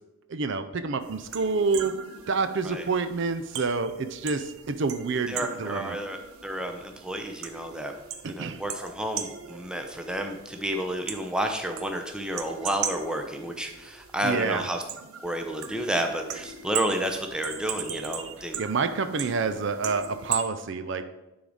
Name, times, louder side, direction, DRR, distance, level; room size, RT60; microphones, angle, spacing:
voice 1, 0.3-1.9 2.3-6.0 8.2-8.6 14.2-14.7 18.6-21.0, right 4 dB, 55° right, 10 dB, 0.4 m, -28 dB
sound 1, 1.0-20.5, right 7 dB, 80° right, 0.7 m, -39 dB
voice 2, 5.3-7.9 8.2-14.8 15.2-18.5, right 1 dB, 5° right, 4 dB, 0.6 m, -31 dB
10.0 x 4.0 x 4.9 m, 0.99 s
head